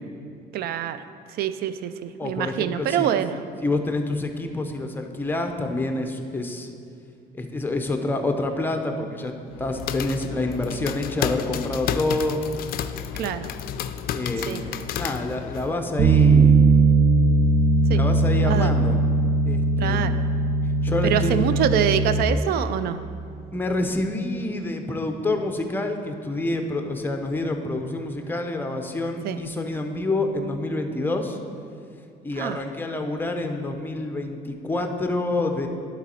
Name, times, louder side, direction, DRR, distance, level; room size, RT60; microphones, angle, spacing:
voice 1, 0.5-1.1 1.4-3.4 13.2-13.5 14.5-14.7 17.9-18.0 18.4-18.7 19.8-20.3 21.0-23.0 29.2-29.4 32.4-32.6, right 10 dB, 65° right, 12 dB, 0.4 m, -25 dB
voice 2, 2.2-3.1 3.6-6.7 7.3-12.5 14.1-16.6 17.9-19.0 19.5-20.4 20.8-21.5 23.5-31.4 32.2-35.7, left 2 dB, 10° left, 5 dB, 0.6 m, -27 dB
sound 1, 9.5-15.7, left 9 dB, 65° left, 0.4 m, -31 dB
Bass guitar, 16.0-22.2, right 3 dB, 50° right, 0.9 m, -19 dB
11.0 x 4.0 x 4.3 m, 2.4 s
cardioid pair, 110°, 17 cm